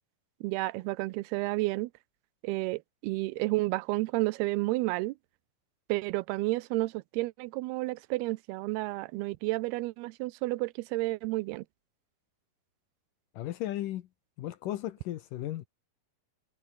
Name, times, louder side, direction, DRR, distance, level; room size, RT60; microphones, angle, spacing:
voice 1, 0.4-1.9 2.4-5.2 5.9-11.6, right 21 dB, 85° right, 2.6 m, -31 dB
voice 2, 13.4-14.1 14.4-15.7, left 13 dB, 70° left, 2.3 m, -35 dB
omnidirectional pair, 4.5 m